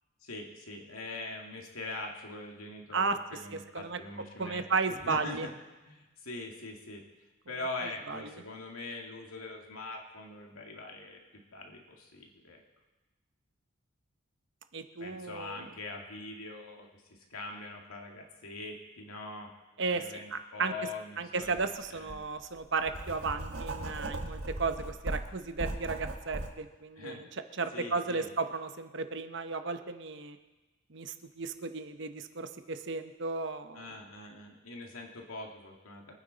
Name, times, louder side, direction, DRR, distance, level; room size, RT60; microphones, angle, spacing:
voice 1, 0.2-5.5 5.8-7.0 7.5-12.6 15.0-19.5 19.9-22.3 26.9-27.2 27.7-28.3 33.7-36.1, left 2 dB, 90° left, 1 dB, 2.3 m, -43 dB
voice 2, 3.5-4.0 4.4-5.5 8.1-8.3 14.7-15.7 19.8-20.0 20.3-20.7 21.2-27.3 27.6-30.4 30.9-33.8, right 4 dB, 55° right, 8 dB, 0.9 m, -34 dB
Writing, 21.4-21.6 22.1-26.5, right 2 dB, 80° right, 1.6 m, -38 dB
24.5 x 9.5 x 4.1 m, 1.1 s
head